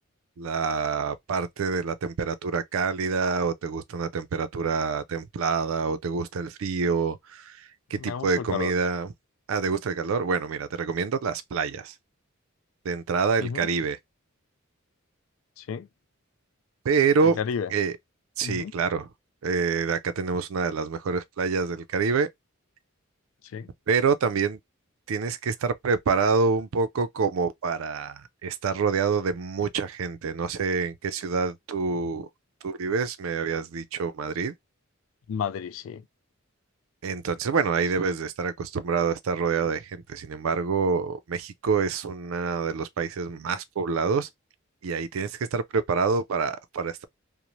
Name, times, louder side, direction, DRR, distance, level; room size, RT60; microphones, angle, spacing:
voice 1, 0.4-9.1 9.5-11.9 12.8-14.0 16.8-17.4 17.7-18.0 18.4-19.1 19.4-22.3 23.9-24.6 25.1-32.3 32.6-34.5 37.0-44.3 44.8-47.0, right 5 dB, 80° right, 0.4 m, -27 dB
voice 2, 8.0-8.7 13.4-13.7 15.6-15.9 17.4-17.7 18.4-18.7 23.5-23.7 35.3-36.0, left 7 dB, 70° left, 0.3 m, -31 dB
2.6 x 2.0 x 3.0 m
head